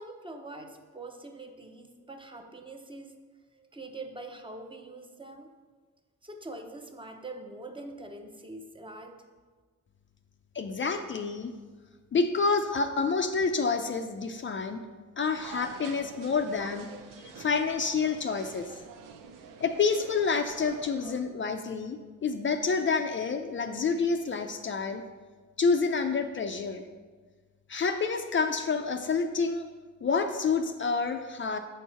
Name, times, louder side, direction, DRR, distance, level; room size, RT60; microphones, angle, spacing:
voice 1, 0.0-3.1 3.5-5.5 6.2-9.2, right 2 dB, 15° right, 4 dB, 0.8 m, -44 dB
voice 2, 10.5-11.5 12.1-14.8 15.2-16.9 17.2-18.7 19.6-25.0 25.6-26.8 27.7-29.7 30.0-31.6, left 4 dB, 40° left, 6 dB, 0.5 m, -28 dB
sound 1, 15.4-21.2, right 7 dB, 80° right, 0.7 m, -47 dB
7.0 x 4.6 x 5.5 m, 1.4 s
cardioid pair, 95°, 32 cm